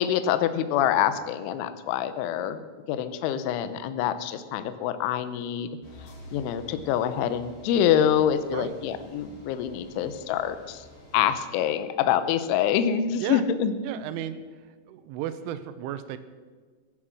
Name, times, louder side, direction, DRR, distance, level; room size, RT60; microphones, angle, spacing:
voice 1, 0.0-5.7 6.3-10.8 11.1-13.7, left 9 dB, 80° left, 11 dB, 3.2 m, -26 dB
sound 1, 5.8-11.2, left 1 dB, 65° left, 5.8 m, -49 dB
voice 2, 13.8-14.4 14.9-16.2, right 11 dB, 85° right, 11 dB, 3.2 m, -33 dB
15.0 x 11.5 x 6.3 m, 1.5 s
omnidirectional pair, 5.7 m